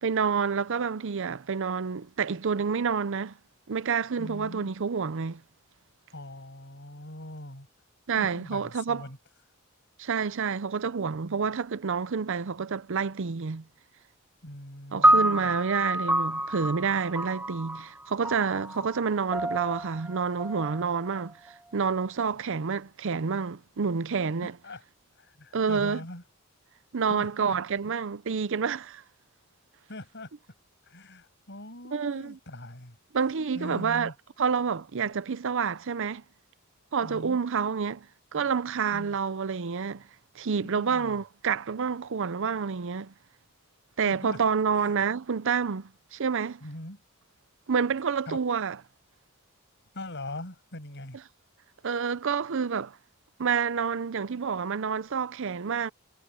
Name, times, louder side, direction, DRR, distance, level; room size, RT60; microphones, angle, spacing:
voice 1, 0.0-3.3 3.7-5.4 8.1-9.0 10.0-13.6 14.9-24.5 25.5-26.0 26.9-29.0 31.9-32.4 33.1-34.1 34.4-36.2 36.9-38.1 38.3-40.0 40.4-43.1 44.0-46.6 47.7-48.8 51.8-53.0 53.4-55.9, right 6 dB, 65° right, 0.6 m, -28 dB
voice 2, 4.2-4.7 6.1-7.7 8.2-9.2 14.4-15.5 24.6-24.8 25.2-26.2 27.1-27.6 29.9-30.3 30.9-33.0 33.5-34.1 37.0-37.4 38.9-39.2 40.7-41.2 44.0-44.4 44.7-44.9 46.6-47.0 48.3-48.4 49.9-51.2, left 1 dB, 55° left, 6.7 m, -41 dB
sound 1, 15.0-21.5, right 1 dB, 10° right, 1.2 m, -28 dB
head